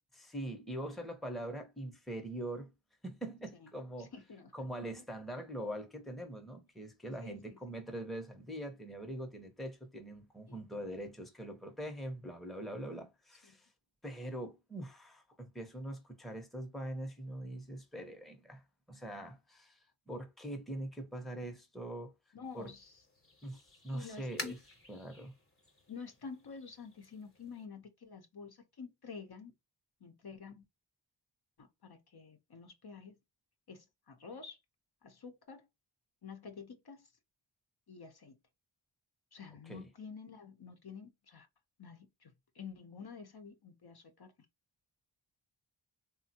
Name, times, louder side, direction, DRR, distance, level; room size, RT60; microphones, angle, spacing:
voice 1, 0.2-2.7 3.0-4.1 4.5-13.7 14.0-18.6 18.9-19.8 20.1-22.1 22.5-22.7 23.4-24.6 24.9-25.3 39.7-39.9, right 1 dB, ahead, 0.7 m, -43 dB
voice 2, 4.0-4.7 7.2-7.6 10.5-10.8 13.4-13.6 22.3-23.0 23.9-24.5 25.9-29.5 30.0-30.6 31.6-33.2 33.7-34.6 35.0-35.7 36.2-37.1 37.9-38.4 39.3-41.5 41.8-44.3, left 5 dB, 55° left, 0.7 m, -49 dB
sound 1, 22.4-27.7, left 1 dB, 30° left, 0.9 m, -50 dB
3.3 x 2.1 x 2.7 m
wide cardioid pair, 55°, 47 cm